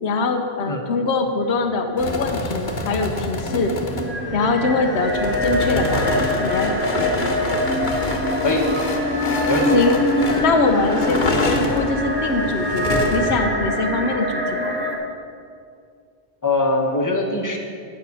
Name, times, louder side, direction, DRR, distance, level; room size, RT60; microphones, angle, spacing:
voice 1, 0.0-3.7 4.3-6.7 9.7-10.0 10.4-14.8, left 3 dB, 90° left, 6 dB, 1.0 m, -23 dB
sound 1, 2.0-13.4, left 2 dB, 50° left, 1.2 m, -27 dB
sound 2, 2.3-15.0, equal, 10° right, 1.4 m, -24 dB
voice 2, 16.4-17.6, left 2 dB, 20° left, 1 dB, 1.1 m, -21 dB
9.4 x 5.7 x 8.3 m, 2.3 s
omnidirectional pair, 1.1 m